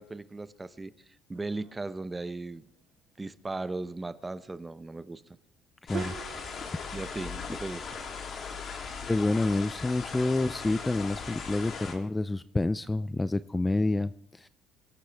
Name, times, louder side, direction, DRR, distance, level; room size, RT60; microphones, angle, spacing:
voice 1, 0.0-2.7 3.2-5.2 6.9-8.0, right 2 dB, 20° right, 0.8 m, -37 dB
sound 1, 1.3-2.0 5.9-6.9, right 9 dB, 60° right, 0.5 m, -41 dB
sound 2, 5.9-11.9, left 5 dB, 50° left, 3.1 m, -39 dB
voice 2, 9.1-14.5, left 2 dB, 15° left, 0.4 m, -28 dB
23.5 x 11.5 x 3.5 m
supercardioid pair, 85°, 0 cm